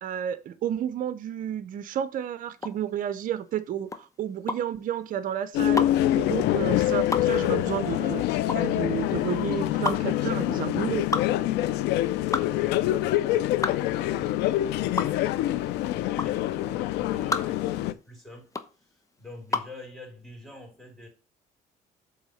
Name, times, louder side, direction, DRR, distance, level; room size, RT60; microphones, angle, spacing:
voice 1, 0.0-5.9 6.1-11.2, right 9 dB, 55° right, 0.7 m, -31 dB
sound 1, 2.6-19.8, left 3 dB, 20° left, 0.9 m, -33 dB
sound 2, 5.5-17.9, left 14 dB, 85° left, 0.5 m, -25 dB
voice 2, 12.4-18.5 18.8-21.1, left 2 dB, ahead, 3.4 m, -46 dB
8.0 x 3.6 x 6.4 m
cardioid pair, 110°, 17 cm